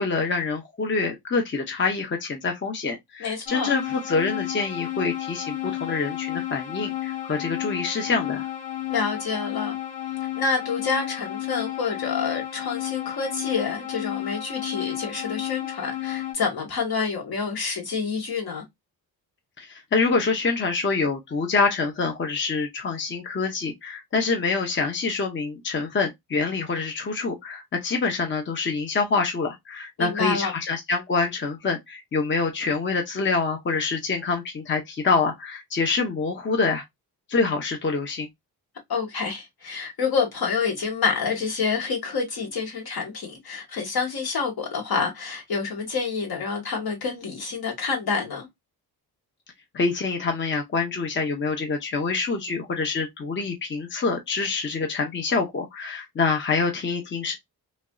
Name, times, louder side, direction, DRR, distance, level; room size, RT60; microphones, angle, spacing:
voice 1, 0.0-8.5 19.6-36.8 37.3-38.3 49.7-57.4, left 4 dB, 30° left, 0.7 m, -26 dB
voice 2, 3.2-3.7 8.9-9.8 10.3-18.6 30.0-30.5 38.9-48.5, left 5 dB, 65° left, 1.8 m, -28 dB
sound 1, 3.5-16.3, left 14 dB, 80° left, 1.3 m, -32 dB
3.1 x 2.6 x 2.3 m
cardioid pair, 85°, 39 cm